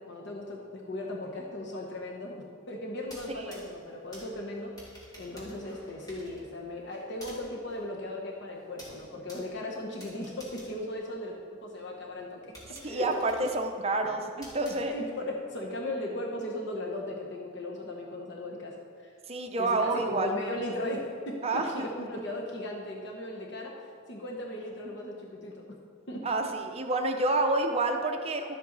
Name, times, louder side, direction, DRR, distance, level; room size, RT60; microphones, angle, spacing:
voice 1, 0.0-4.7 5.2-11.3 11.6-12.4 12.8-13.5 14.0-14.1 14.9-18.7 19.0-19.2 19.6-25.8 26.1-26.2, left 1 dB, 60° left, -1 dB, 1.0 m, -37 dB
sound 1, 3.0-11.7 12.1-12.2 12.5-15.3, equal, 20° left, 2.3 m, -52 dB
voice 2, 12.8-15.0 19.3-20.3 21.4-21.7 26.2-28.5, right 2 dB, 30° right, 4 dB, 0.7 m, -28 dB
12.0 x 7.8 x 4.0 m, 2.2 s
head